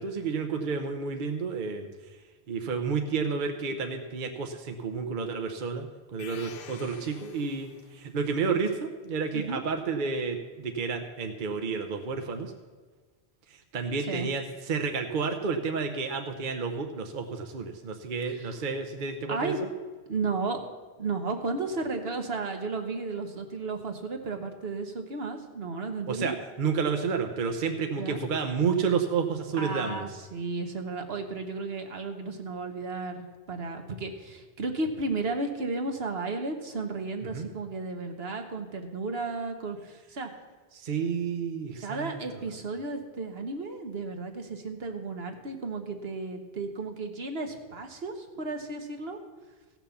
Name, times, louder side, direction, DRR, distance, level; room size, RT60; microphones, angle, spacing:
voice 1, 0.0-2.2 2.5-12.5 13.5-19.7 26.1-30.1 37.3-37.5 40.7-42.2, right 5 dB, 55° right, 5 dB, 0.9 m, -31 dB
sound 1, 6.2-8.1, left 7 dB, 60° left, 0.9 m, -47 dB
voice 2, 9.3-9.6 14.0-14.3 18.4-18.5 19.3-19.6 20.1-20.6 21.0-26.4 28.0-28.2 29.6-40.3 41.8-49.2, right 3 dB, 70° right, 5 dB, 1.4 m, -33 dB
15.5 x 6.0 x 7.0 m, 1.4 s
omnidirectional pair, 1.1 m